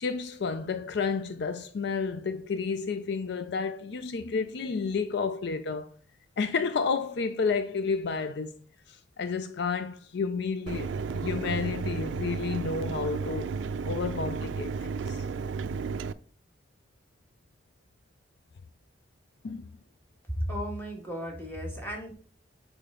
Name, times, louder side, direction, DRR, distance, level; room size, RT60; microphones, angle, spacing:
voice 1, 0.0-5.9 6.4-8.6 8.9-13.5 13.8-15.3 19.4-19.7, left 5 dB, 65° left, 0.4 m, -31 dB
Mechanisms, 10.7-16.1, right 5 dB, 85° right, 0.4 m, -33 dB
voice 2, 20.4-22.1, equal, 10° left, 1.6 m, -34 dB
6.7 x 4.5 x 3.7 m
head